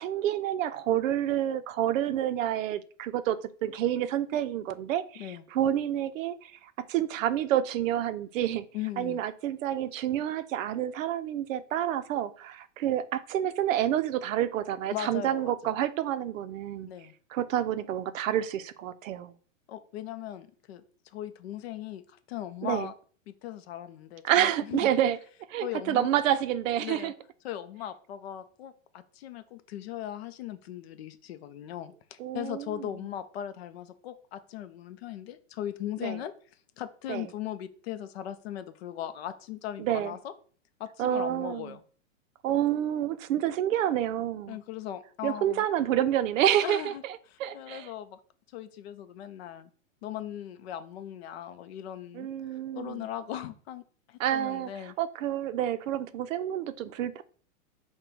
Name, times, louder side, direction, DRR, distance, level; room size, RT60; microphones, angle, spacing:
voice 1, 0.0-8.7 9.0-16.9 17.3-19.3 22.6-22.9 24.2-25.2 25.5-27.1 32.2-32.9 36.0-36.2 37.1-37.3 39.8-40.1 41.0-41.8 42.4-44.6 45.2-46.9 47.4-47.9 52.1-53.1 54.2-54.7 55.0-57.2, right 11 dB, 75° right, 0.5 m, -28 dB
voice 2, 8.7-9.2 14.9-15.5 16.9-17.1 19.7-22.9 23.3-24.9 25.6-26.1 26.8-27.1 27.4-36.3 36.8-40.3 40.8-41.8 44.5-45.6 46.6-48.2 48.5-49.7 50.0-52.3 52.7-53.8 54.1-55.0, left 11 dB, 50° left, 0.5 m, -38 dB
3.8 x 2.2 x 4.3 m
hypercardioid pair, 150°, 40 cm